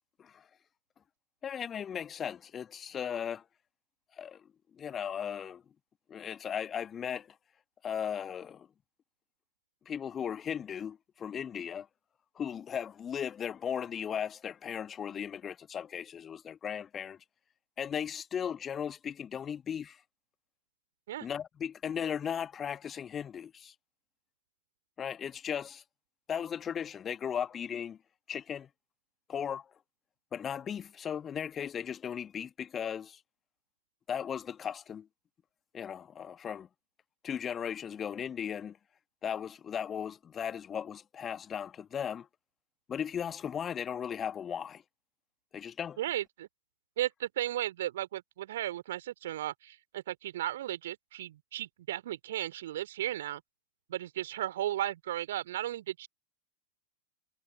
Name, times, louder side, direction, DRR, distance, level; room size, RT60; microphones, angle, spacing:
voice 1, 1.4-3.4 4.2-4.4 4.8-5.6 6.1-7.3 7.8-8.7 9.9-11.9 12.4-17.2 17.8-20.0 21.2-23.7 25.0-25.8 26.3-28.0 28.3-28.7 29.3-29.6 30.3-33.2 34.1-35.1 35.7-36.7 37.2-38.8 39.2-42.3 42.9-44.8 45.5-46.0, left 8 dB, 25° left, 2.1 m, -36 dB
voice 2, 46.0-46.5 47.0-53.4 53.9-56.1, right 13 dB, 60° right, 3.2 m, -35 dB
figure-of-eight pair, 90°, 0 cm